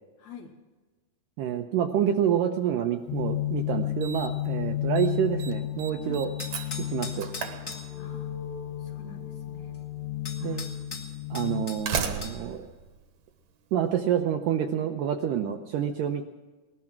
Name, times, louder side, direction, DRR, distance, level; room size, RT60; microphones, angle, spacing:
voice 1, 0.2-0.6 6.0-6.3 8.0-8.3 8.8-9.7 10.4-10.8, left 6 dB, 60° left, 2 dB, 2.1 m, -47 dB
voice 2, 1.4-6.3 6.9-7.3 10.4-10.7 11.3-12.7 13.7-16.2, right 9 dB, 80° right, 5 dB, 2.0 m, -28 dB
sound 1, 3.1-11.7, left 13 dB, 90° left, 3.2 m, -33 dB
Slam, 3.2-3.3 4.0-4.5 4.7-5.1 5.4-8.3 9.4-9.5 10.4-10.5 11.5-13.8, right 7 dB, 60° right, 2.1 m, -36 dB
sound 2, 6.4-7.9 9.7-9.8 10.2-12.4, left 3 dB, 30° left, 1.4 m, -40 dB
19.5 x 12.5 x 5.9 m, 1.3 s
omnidirectional pair, 4.6 m